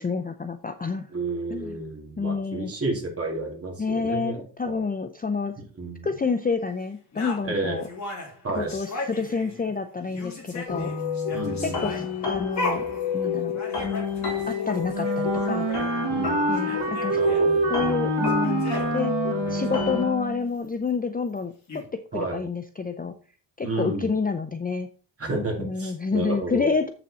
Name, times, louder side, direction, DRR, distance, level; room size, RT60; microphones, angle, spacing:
voice 1, 0.0-1.1 1.5-1.8 2.2-2.7 3.8-5.5 6.0-7.9 8.5-10.9 11.6-12.8 13.1-13.6 14.5-15.7 16.5-17.2 17.7-18.6 18.9-19.1 19.5-23.1 23.6-24.9 25.6-26.9, left 5 dB, 20° left, 7 dB, 0.5 m, -28 dB
voice 2, 1.1-4.8 5.8-6.1 7.5-7.8 8.4-8.7 11.3-11.8 16.1-16.5 17.1-17.8 19.5-19.7 22.1-22.4 23.6-24.1 25.2-26.7, right 2 dB, 30° right, 0 dB, 2.6 m, -31 dB
sound 1, 7.1-9.7 10.0-15.9 16.3-16.4 16.5-17.5 18.2-19.1 19.4-19.8 21.4-21.5 21.7-21.8, left 2 dB, 40° left, 3.0 m, -36 dB
sound 2, 10.7-20.0, left 6 dB, 60° left, 3.9 m, -29 dB
Wind instrument woodwind instrument, 14.9-20.4, right 4 dB, 75° right, 1.8 m, -27 dB
7.6 x 6.9 x 4.1 m, 0.38 s
wide cardioid pair, 165°, 44 cm